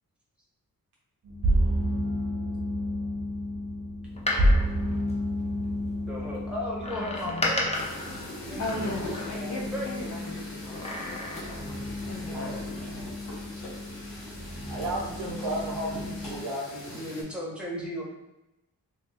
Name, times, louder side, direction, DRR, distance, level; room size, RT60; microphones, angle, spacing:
sound 1, 1.2-16.4, equal, 60° right, 1.0 m, -31 dB
Door, 4.0-5.9 6.8-9.7 10.6-11.7 12.1-12.2, left 2 dB, 15° left, 0.9 m, -34 dB
voice 1, 6.1-7.8 8.4-10.4 12.2-12.6 15.4-15.7 16.9-18.0, equal, 5° right, -4 dB, 1.4 m, -36 dB
voice 2, 6.9-7.8 8.6-12.9, left 2 dB, 45° left, -3 dB, 0.6 m, -39 dB
sound 2, 7.7-17.2, left 1 dB, 90° left, 1.4 m, -42 dB
voice 3, 12.3-13.1 14.7-17.0, right 1 dB, 85° right, -4 dB, 0.6 m, -34 dB
2.7 x 2.7 x 3.6 m, 0.95 s
cardioid pair, 45°, 39 cm